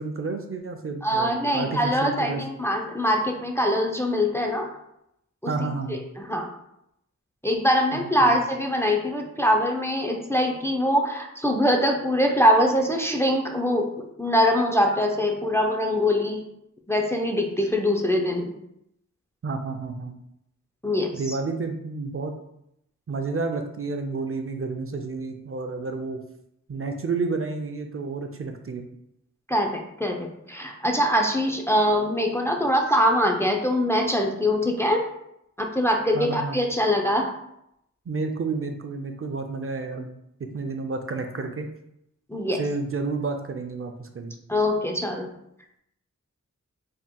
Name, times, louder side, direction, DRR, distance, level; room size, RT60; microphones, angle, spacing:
voice 1, 0.0-2.4 5.5-6.0 7.9-8.4 19.4-20.2 21.1-22.4 23.1-26.2 26.7-28.9 36.1-36.6 38.1-40.1 40.5-41.7 42.6-44.4, right 4 dB, 45° right, 5 dB, 0.4 m, -30 dB
voice 2, 1.0-4.7 5.4-5.5 5.9-6.5 7.4-16.4 16.9-18.5 20.8-21.4 29.5-35.0 35.6-37.3 42.3-42.6 44.5-45.3, equal, 10° left, 1 dB, 0.4 m, -23 dB
4.1 x 3.6 x 2.2 m, 0.79 s
wide cardioid pair, 85°, 30 cm